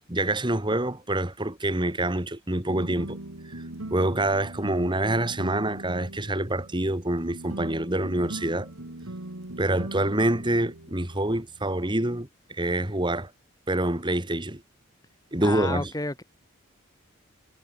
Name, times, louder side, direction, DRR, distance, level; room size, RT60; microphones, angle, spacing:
voice 1, 0.1-3.2 3.5-3.6 3.9-8.7 9.6-13.3 13.7-14.6 15.3-15.9, right 1 dB, 20° right, 2.3 m, -26 dB
sound 1, 2.7-11.9, right 1 dB, 80° right, 2.3 m, -40 dB
voice 2, 15.4-16.2, left 2 dB, 15° left, 1.1 m, -31 dB
head